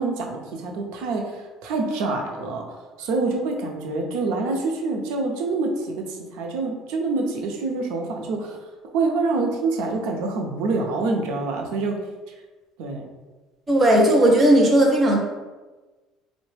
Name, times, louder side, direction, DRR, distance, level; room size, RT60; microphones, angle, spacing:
voice 1, 0.0-8.6 8.9-12.0 12.8-13.0, right 3 dB, 75° right, 2 dB, 0.6 m, -26 dB
voice 2, 13.7-15.2, right 1 dB, 20° right, -1 dB, 0.5 m, -16 dB
3.7 x 2.1 x 3.2 m, 1.2 s
cardioid pair, 155°, 0 cm